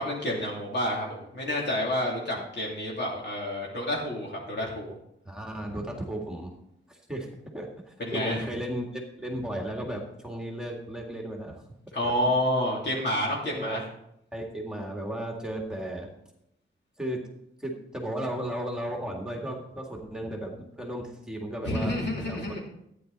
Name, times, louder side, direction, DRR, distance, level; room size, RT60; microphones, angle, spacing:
voice 1, 0.0-4.9 8.0-8.5 11.9-13.8 21.6-22.6, left 1 dB, 60° left, -3 dB, 2.8 m, -29 dB
voice 2, 5.3-6.5 6.9-7.3 7.5-11.6 12.0-12.1 13.5-13.8 14.3-16.1 17.0-17.2 17.6-21.9 22.2-22.6, right 1 dB, 5° right, 0 dB, 2.0 m, -35 dB
13.5 x 9.7 x 4.0 m, 0.77 s
wide cardioid pair, 165°, 20 cm